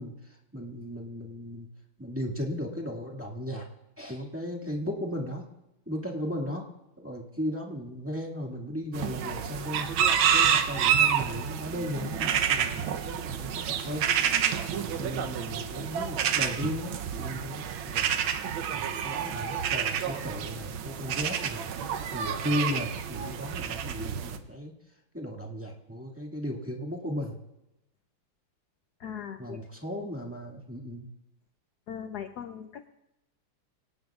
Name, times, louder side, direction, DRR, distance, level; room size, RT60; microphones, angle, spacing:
voice 1, 0.0-1.7 2.0-3.7 4.0-5.5 5.9-6.7 7.0-9.9 10.3-14.1 14.7-18.3 18.7-21.6 22.1-24.7 25.1-27.4 29.4-31.1, equal, 5° right, -2 dB, 1.7 m, -36 dB
sound 1, 8.9-24.4, right 8 dB, 75° right, 1.6 m, -29 dB
voice 2, 29.0-29.6 31.9-32.9, left 8 dB, 65° left, 8 dB, 1.0 m, -39 dB
25.5 x 18.0 x 2.4 m, 0.89 s
omnidirectional pair, 2.3 m